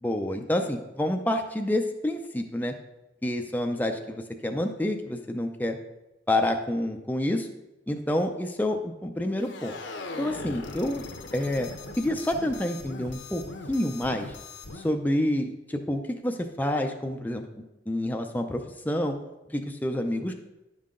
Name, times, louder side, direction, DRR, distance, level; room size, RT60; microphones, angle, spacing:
voice 1, 0.0-2.7 3.2-5.8 6.3-7.5 7.9-9.8 10.2-11.0 11.3-11.7 12.0-13.4 13.7-14.3 14.8-17.4 17.9-19.2 19.5-20.3, left 1 dB, 10° left, 4 dB, 0.5 m, -28 dB
sound 1, 9.4-14.9, left 3 dB, 75° left, 0.9 m, -40 dB
9.9 x 5.7 x 3.7 m, 0.97 s
head